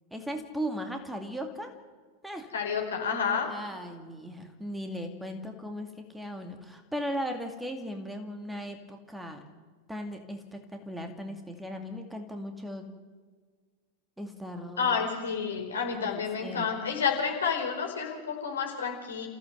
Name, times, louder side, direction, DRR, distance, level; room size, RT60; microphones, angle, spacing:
voice 1, 0.1-1.7 2.2-2.5 3.5-9.4 9.9-12.9 14.2-15.0 15.9-16.7, equal, 5° right, 5 dB, 2.4 m, -37 dB
voice 2, 2.5-3.5 14.8-19.3, left 6 dB, 70° left, 2 dB, 4.8 m, -30 dB
28.0 x 15.5 x 7.9 m, 1.5 s
figure-of-eight pair, 90°, 0 cm